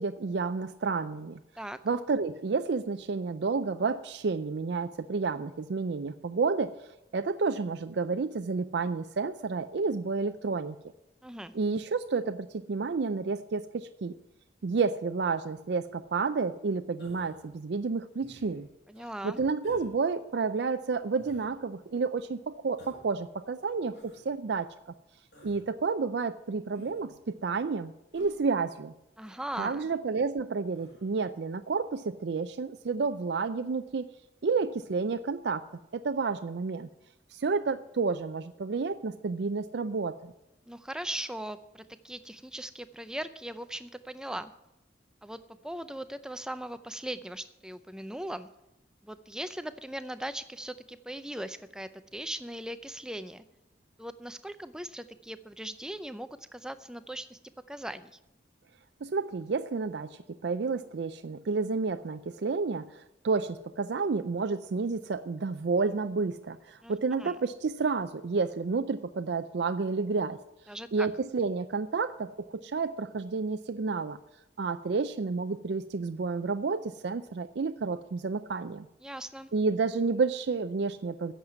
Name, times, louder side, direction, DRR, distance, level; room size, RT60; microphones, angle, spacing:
voice 1, 0.0-1.4 1.9-6.7 7.1-10.8 11.5-14.1 14.6-18.7 19.2-24.7 25.4-28.9 29.6-34.1 34.4-35.6 35.9-36.9 37.3-40.3 59.0-70.4 70.9-74.2 74.6-78.9 79.5-81.3, right 4 dB, 70° right, 9 dB, 0.4 m, -30 dB
voice 2, 11.2-11.5 18.9-19.4 29.2-29.8 40.7-44.5 45.2-45.4 45.6-48.5 49.0-53.4 54.0-57.4 57.7-58.2 66.8-67.4 70.7-71.1 79.0-79.5, right 1 dB, 5° right, 11 dB, 0.5 m, -39 dB
Human voice, 17.0-17.5 18.2-18.7 19.6-19.9 21.2-21.5 22.8-23.1 23.9-24.2 25.3-25.7 26.7-27.1 28.1-28.4 29.5-29.8 30.7-31.1, equal, 75° left, 5.6 m, -53 dB
10.5 x 7.4 x 9.4 m, 0.90 s
head